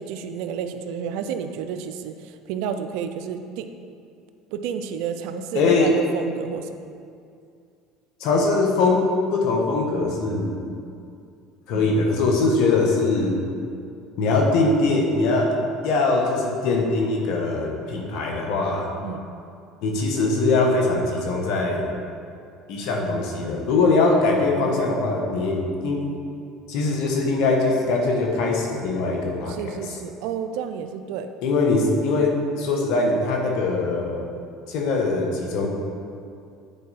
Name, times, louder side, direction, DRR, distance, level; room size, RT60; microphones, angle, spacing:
voice 1, 0.0-3.7 4.5-6.8 11.7-11.9 19.0-19.3 24.6-24.8 29.5-31.3, right 7 dB, 75° right, 9 dB, 0.5 m, -31 dB
voice 2, 5.5-5.9 8.2-10.5 11.7-13.3 14.2-15.5 15.8-18.9 19.8-21.9 22.7-26.1 26.7-29.7 31.4-34.2 34.7-35.7, left 3 dB, 70° left, 1 dB, 1.3 m, -22 dB
8.9 x 4.5 x 4.2 m, 2.4 s
supercardioid pair, 85°, 0 cm